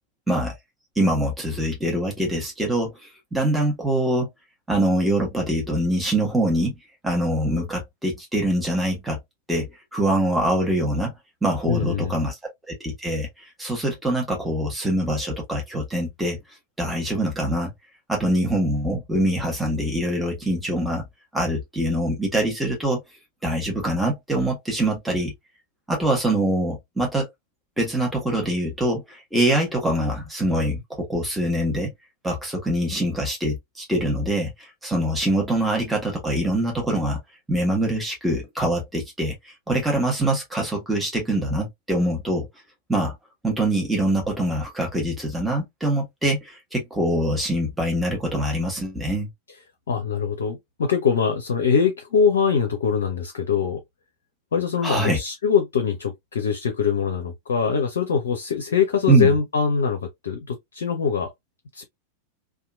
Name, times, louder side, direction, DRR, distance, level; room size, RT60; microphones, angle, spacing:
voice 1, 1.0-4.3 4.7-6.7 7.0-9.2 9.5-11.1 11.4-12.4 12.8-16.4 16.8-17.7 18.1-21.1 21.3-23.0 23.4-25.3 25.9-27.3 27.8-31.9 32.2-37.2 37.5-39.3 39.7-42.5 42.9-43.1 43.4-49.3 54.8-55.2 59.1-59.3, right 1 dB, 5° right, 1.0 m, -24 dB
voice 2, 11.7-12.2 49.9-53.8 54.5-61.3 61.7-61.8, left 6 dB, 65° left, 0.5 m, -23 dB
2.8 x 2.3 x 2.2 m
figure-of-eight pair, 90°, 0 cm